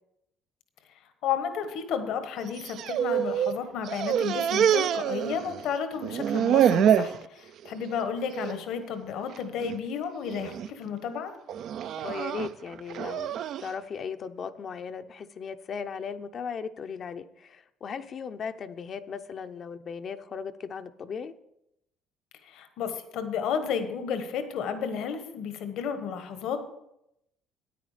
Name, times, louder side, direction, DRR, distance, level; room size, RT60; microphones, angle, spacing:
voice 1, 1.2-11.3 22.4-26.6, left 7 dB, 75° left, 8 dB, 1.2 m, -32 dB
sound 1, 2.5-3.6 3.8-5.7 6.0-7.2 7.6-8.0 8.3-8.5 9.4-9.8 10.3-10.7 11.5-13.7, right 9 dB, 65° right, 0.3 m, -26 dB
voice 2, 12.0-21.3, left 6 dB, 45° left, 9 dB, 0.6 m, -37 dB
9.4 x 9.3 x 5.0 m, 0.81 s
cardioid pair, 105°, 0 cm